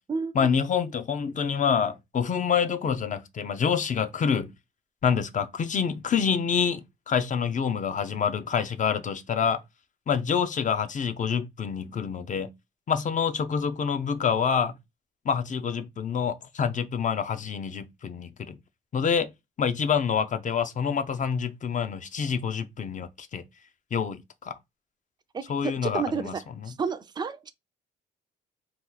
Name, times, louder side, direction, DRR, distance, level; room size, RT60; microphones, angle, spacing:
voice 1, 0.3-4.5 5.0-9.6 10.1-12.5 12.9-14.7 15.2-18.6 18.9-19.3 19.6-23.4 23.9-24.6 25.5-26.3 26.6-26.7, left 7 dB, 40° left, 0.5 m, -27 dB
voice 2, 25.3-27.5, right 5 dB, 20° right, 0.4 m, -31 dB
2.9 x 2.3 x 3.8 m
cardioid pair, 90°, 20 cm